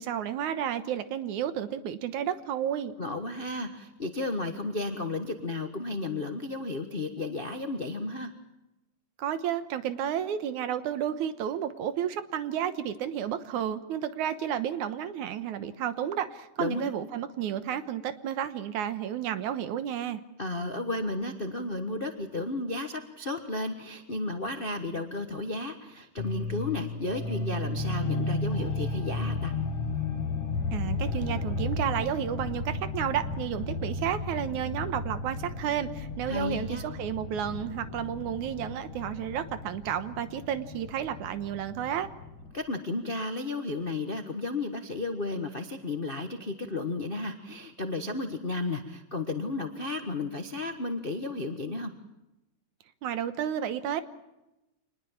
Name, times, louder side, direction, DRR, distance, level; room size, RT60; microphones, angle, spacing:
voice 1, 0.0-3.0 9.2-20.2 30.7-42.1 53.0-54.0, right 9 dB, 85° right, 11 dB, 2.6 m, -32 dB
voice 2, 3.0-8.3 16.6-16.9 20.4-29.5 36.3-36.8 42.5-51.9, left 2 dB, 80° left, 6 dB, 0.5 m, -33 dB
sound 1, 26.2-42.5, left 3 dB, 55° left, 5.7 m, -34 dB
26.0 x 20.0 x 7.2 m, 0.95 s
omnidirectional pair, 3.4 m